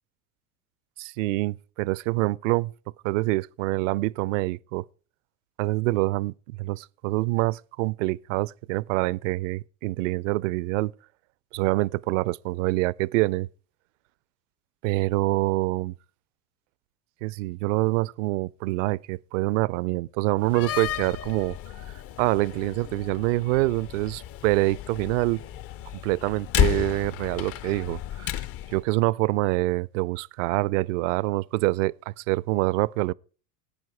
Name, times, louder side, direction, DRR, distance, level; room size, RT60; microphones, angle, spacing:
voice 1, 1.0-2.7 3.0-4.8 5.6-10.9 11.5-13.5 14.8-15.9 17.2-21.6 22.2-25.4 26.0-28.5 28.7-33.1, right 20 dB, 60° right, 0.5 m, -26 dB
Slam, 20.4-28.8, left 12 dB, 35° left, 0.5 m, -32 dB
17.5 x 9.3 x 4.7 m
hypercardioid pair, 85°, 44 cm